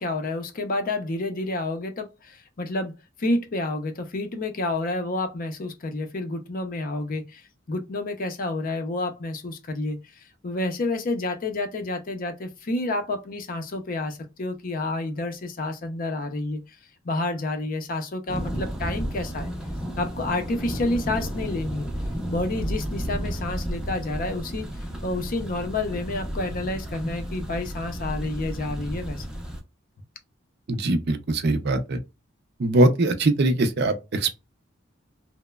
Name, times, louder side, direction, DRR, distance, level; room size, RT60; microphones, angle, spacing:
voice 1, 0.0-7.4 7.7-16.6 17.0-19.5 20.0-21.9 22.3-24.7 25.0-29.2, left 2 dB, 45° left, 0.5 m, -29 dB
Thunder, 18.3-29.6, equal, 5° right, 0.5 m, -32 dB
voice 2, 30.7-32.0 32.6-34.3, right 2 dB, 55° right, 0.5 m, -22 dB
2.9 x 2.0 x 2.2 m
head